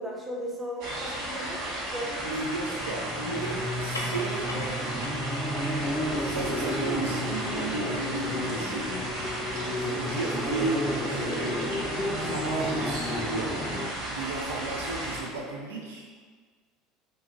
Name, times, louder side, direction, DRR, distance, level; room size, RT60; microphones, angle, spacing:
voice 1, 0.0-2.4, equal, 20° right, -2 dB, 0.7 m, -36 dB
sound 1, 0.8-15.2, right 1 dB, 60° right, 0.8 m, -34 dB
voice 2, 2.2-5.1 6.2-8.9 9.8-11.6 12.2-13.6 14.1-16.1, right 3 dB, 75° right, -1 dB, 0.3 m, -34 dB
sound 2, 2.6-13.9, left 1 dB, 20° left, 0.5 m, -32 dB
sound 3, 3.7-8.6, left 1 dB, 90° left, 0.4 m, -44 dB
2.7 x 2.3 x 3.8 m, 1.5 s
figure-of-eight pair, 70°, 0 cm